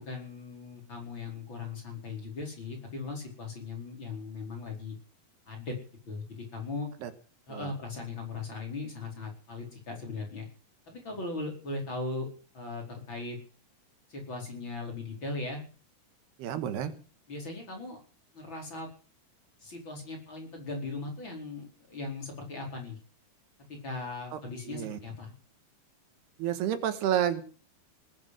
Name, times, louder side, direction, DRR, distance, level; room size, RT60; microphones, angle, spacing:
voice 1, 0.0-4.9 5.5-5.7 6.1-6.2 6.5-6.9 7.5-10.4 10.9-12.3 12.5-13.4 14.1-15.6 17.3-18.0 18.3-18.9 19.6-23.0 23.7-25.3, left 3 dB, 30° left, 1 dB, 5.0 m, -38 dB
voice 2, 16.4-16.9 24.3-24.4 24.7-25.0 26.4-27.4, right 10 dB, 80° right, 10 dB, 3.4 m, -30 dB
19.5 x 8.9 x 7.9 m, 0.39 s
omnidirectional pair, 4.7 m